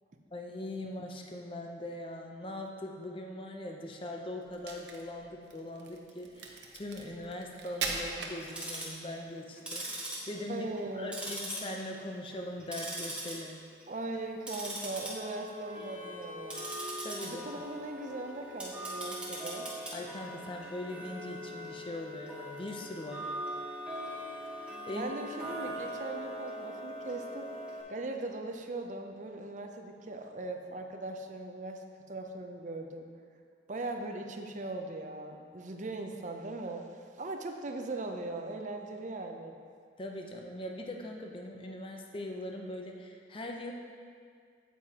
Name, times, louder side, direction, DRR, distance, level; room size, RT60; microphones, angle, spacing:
voice 1, 0.3-13.6 17.0-17.4 19.9-23.3 24.9-25.1 40.0-43.7, left 1 dB, 30° left, 2 dB, 0.7 m, -41 dB
Crack, 4.5-9.1, right 4 dB, 65° right, 0.8 m, -40 dB
Tick-tock, 8.4-9.0 9.6-10.9 11.1-12.0 12.3-13.3 13.7-14.0 14.4-27.8, right 1 dB, 5° right, 1.3 m, -41 dB
voice 2, 10.5-11.2 13.9-16.7 17.2-19.7 24.9-27.5 27.9-31.8 32.1-33.1 33.7-36.9 37.2-39.6, right 2 dB, 40° right, 4 dB, 0.6 m, -39 dB
8.4 x 8.4 x 2.9 m, 2.1 s
head